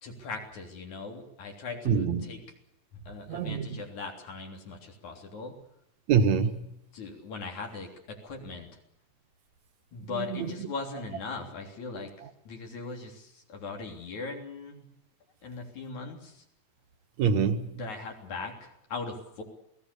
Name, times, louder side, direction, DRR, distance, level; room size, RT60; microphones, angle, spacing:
voice 1, 0.0-2.4 2.9-5.5 6.9-8.7 9.9-12.1 12.5-14.8 15.4-16.4 17.7-19.4, left 4 dB, 75° left, 3 dB, 4.7 m, -39 dB
voice 2, 1.9-2.3 3.3-3.8 6.1-6.7 10.1-10.5 17.2-17.8, right 6 dB, 70° right, 8 dB, 2.9 m, -26 dB
28.0 x 18.5 x 6.9 m, 0.77 s
omnidirectional pair, 3.3 m